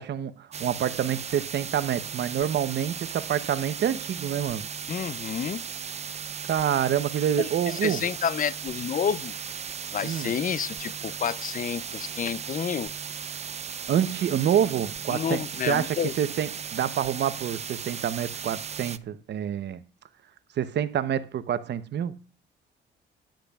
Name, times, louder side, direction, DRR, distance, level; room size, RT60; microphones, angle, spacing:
voice 1, 0.0-4.7 6.5-8.0 10.0-10.3 13.9-19.8 20.6-22.2, right 9 dB, 60° right, 0.9 m, -27 dB
sound 1, 0.5-19.0, right 7 dB, 35° right, 0.5 m, -36 dB
voice 2, 4.9-5.6 7.4-9.3 9.9-12.9 15.1-16.1, left 7 dB, 45° left, 0.6 m, -29 dB
13.5 x 10.5 x 2.4 m
cardioid pair, 90°, 20 cm